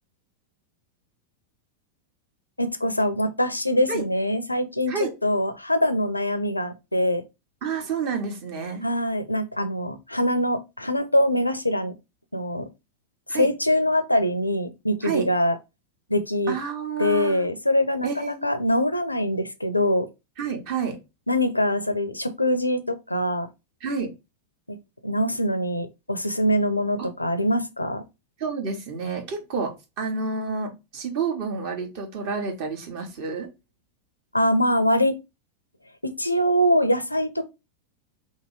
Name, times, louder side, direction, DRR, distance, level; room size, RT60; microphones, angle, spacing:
voice 1, 2.6-7.2 8.8-11.9 12.3-12.7 13.3-15.6 16.1-16.6 17.0-20.1 21.3-23.5 24.7-24.8 25.0-28.0 34.3-35.2 36.0-37.5, left 1 dB, 85° left, 0.4 m, -23 dB
voice 2, 7.6-8.8 13.3-13.5 15.0-15.3 16.5-17.5 18.0-18.5 20.4-21.0 23.8-24.1 27.0-27.1 28.4-33.5, right 5 dB, 45° right, 1.1 m, -29 dB
2.9 x 2.8 x 4.4 m
figure-of-eight pair, 90°, 0 cm